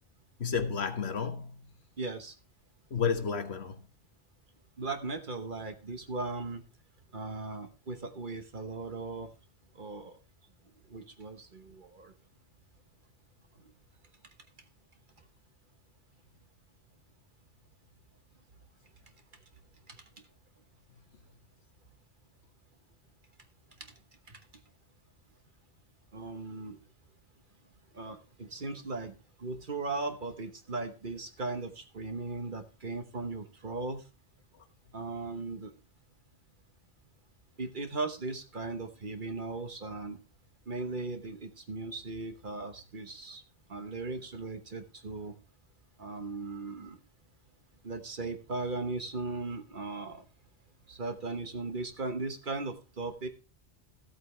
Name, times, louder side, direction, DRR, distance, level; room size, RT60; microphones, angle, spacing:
voice 1, 0.4-1.6 2.9-3.8, left 6 dB, 65° left, 1.4 m, -31 dB
voice 2, 2.0-2.3 4.8-6.6 7.1-9.3 9.7-10.2 10.9-12.1 19.9-20.0 23.8-23.9 24.3-24.4 26.1-26.8 27.9-29.1 29.4-34.0 34.9-35.7 37.6-40.2 40.7-43.4 43.7-45.3 46.0-47.0 47.8-50.3 50.9-53.3, right 3 dB, 50° right, 1.2 m, -38 dB
14.0 x 8.0 x 3.2 m
omnidirectional pair, 1.2 m